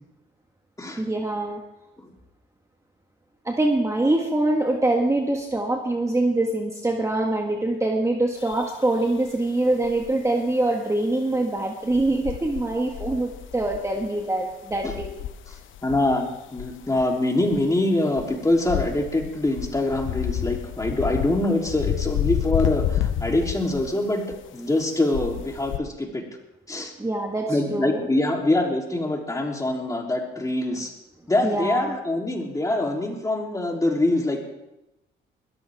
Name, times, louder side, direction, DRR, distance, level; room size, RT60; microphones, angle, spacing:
voice 1, 1.0-1.6 3.4-15.2 27.0-28.0 31.4-31.9, right 2 dB, 15° right, 1 dB, 1.7 m, -24 dB
sound 1, 8.4-9.1 9.8-10.1 11.9-14.2 14.5-16.3 16.6-17.1 17.4-17.7 18.2-23.9 24.3-24.5 25.1-25.8, left 11 dB, 75° left, 0.8 m, -30 dB
voice 2, 15.8-24.2 24.5-26.2 26.7-26.9 27.5-30.9 31.3-34.4, left 1 dB, 15° left, 0 dB, 3.3 m, -24 dB
21.0 x 14.0 x 3.6 m, 0.89 s
cardioid pair, 90°, 20 cm